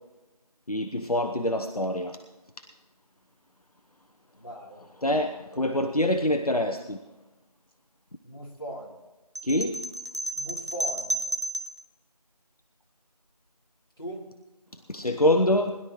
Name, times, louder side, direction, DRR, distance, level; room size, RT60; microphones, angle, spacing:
voice 1, 0.7-2.2 5.0-7.0 9.4-9.9 14.9-15.8, left 1 dB, 65° left, 6 dB, 0.9 m, -25 dB
voice 2, 4.3-4.9 8.2-9.0 10.4-11.3 14.0-14.3, equal, 35° left, -4 dB, 2.8 m, -39 dB
sound 1, 9.4-11.8, right 1 dB, 45° right, 0.9 m, -32 dB
21.0 x 11.5 x 3.2 m, 1.1 s
figure-of-eight pair, 180°, 21 cm